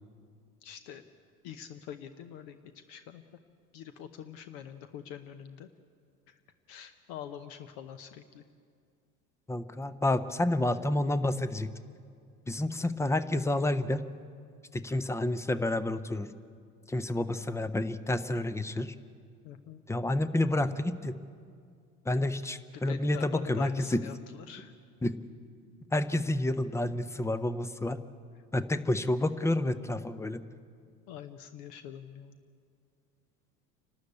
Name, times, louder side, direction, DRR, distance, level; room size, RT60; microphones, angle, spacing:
voice 1, 0.6-1.0 1.4-2.6 2.9-3.2 3.7-5.7 6.3-6.4 6.7-8.4 19.4-19.8 22.7-24.7 31.1-32.4, left 9 dB, 50° left, 11 dB, 1.0 m, -45 dB
voice 2, 9.5-11.7 12.5-14.0 14.7-16.3 16.9-18.9 19.9-21.2 22.1-24.0 25.0-25.2 25.9-28.0 28.5-30.4, left 1 dB, 5° left, 14 dB, 0.6 m, -29 dB
28.5 x 12.5 x 8.4 m, 2.2 s
figure-of-eight pair, 75°, 46 cm